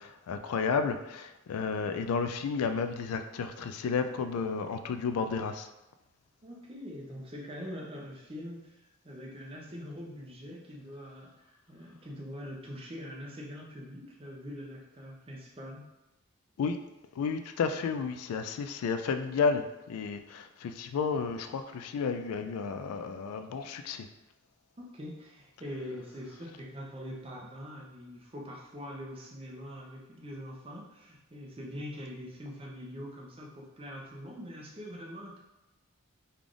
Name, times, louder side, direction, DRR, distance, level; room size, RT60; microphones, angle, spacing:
voice 1, 0.0-5.7 16.6-16.8 17.2-24.1, left 5 dB, 85° left, 8 dB, 0.3 m, -32 dB
voice 2, 6.4-15.9 24.8-35.4, equal, 25° right, -2 dB, 0.6 m, -43 dB
3.3 x 2.4 x 3.7 m, 0.96 s
head